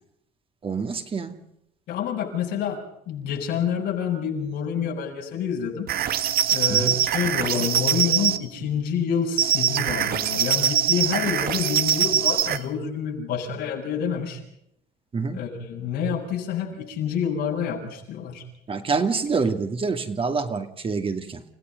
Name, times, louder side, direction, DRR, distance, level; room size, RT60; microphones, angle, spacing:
voice 1, 0.6-1.4 6.7-7.0 15.1-15.4 18.7-21.4, right 4 dB, 35° right, 7 dB, 2.4 m, -26 dB
voice 2, 1.9-5.9 6.5-14.4 15.3-18.4, left 7 dB, 80° left, 0 dB, 7.3 m, -28 dB
sound 1, 5.9-8.4 9.4-12.6, right 10 dB, 60° right, 1.6 m, -23 dB
29.5 x 17.0 x 5.4 m, 0.76 s
cardioid pair, 110°, 17 cm